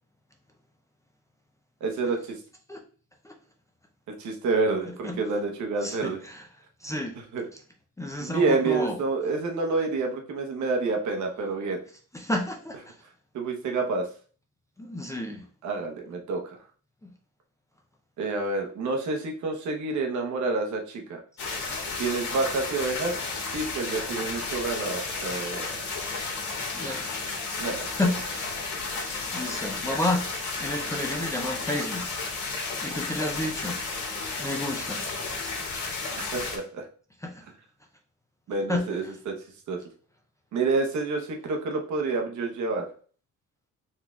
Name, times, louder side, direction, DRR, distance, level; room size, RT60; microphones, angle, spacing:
voice 1, 1.8-2.4 4.1-6.2 7.3-7.4 8.2-11.8 13.3-14.1 15.6-16.4 18.2-21.2 22.0-23.2 23.4-25.7 27.6-27.9 36.1-36.8 38.5-39.3 39.7-39.8 40.5-42.8, right 3 dB, 70° right, 2 dB, 1.0 m, -28 dB
voice 2, 4.9-5.2 5.8-6.4 6.8-7.1 8.0-9.0 12.1-13.0 14.8-15.5 17.0-17.1 26.7-27.1 28.0-28.2 29.3-30.3 30.6-32.1 32.8-33.8 34.4-35.0 37.2-37.4 38.7-39.1, left 1 dB, 10° left, 1 dB, 0.4 m, -31 dB
sound 1, 21.4-36.6, left 3 dB, 70° left, 1.7 m, -33 dB
4.2 x 3.7 x 2.3 m, 0.43 s
cardioid pair, 165°, 30 cm